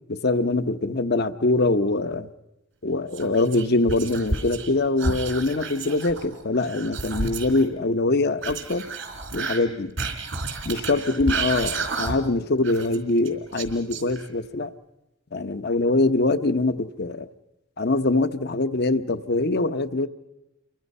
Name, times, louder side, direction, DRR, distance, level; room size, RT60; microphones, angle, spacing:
voice 1, 0.1-2.3 2.8-8.9 9.3-9.9 10.6-14.7 15.3-17.3 17.8-20.1, left 2 dB, 55° left, 12 dB, 0.9 m, -23 dB
Whispering, 3.1-4.7 5.0-7.6 8.4-12.4 12.6-14.5, right 3 dB, 75° right, 3.3 m, -31 dB
29.0 x 24.0 x 5.5 m, 0.93 s
head